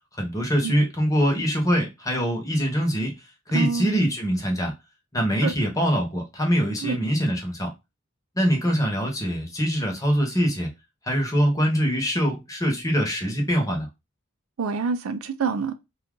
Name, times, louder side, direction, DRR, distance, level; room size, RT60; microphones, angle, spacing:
voice 1, 0.2-3.1 3.5-4.7 5.1-7.7 8.4-10.7 11.1-13.9, equal, 15° left, 0.9 m, -23 dB
voice 2, 3.5-4.0 5.4-5.5 6.8-7.0 14.6-15.7, right 5 dB, 80° right, 0.4 m, -27 dB
2.7 x 2.3 x 3.6 m
head